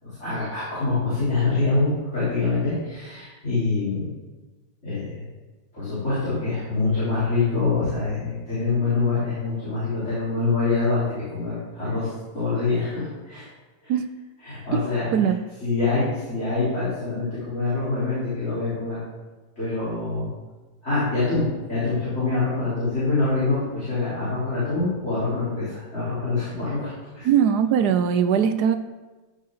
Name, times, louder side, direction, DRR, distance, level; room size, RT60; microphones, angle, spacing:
voice 1, 0.0-4.1 4.8-5.2 5.7-11.0 11.3-13.5 13.8-13.9 14.4-15.1 15.6-19.0 19.6-20.3 20.8-27.3, left 3 dB, 35° left, -12 dB, 4.3 m, -25 dB
voice 2, 27.2-28.8, right 8 dB, 70° right, 10 dB, 1.0 m, -20 dB
15.0 x 6.7 x 3.9 m, 1.2 s
omnidirectional pair, 2.1 m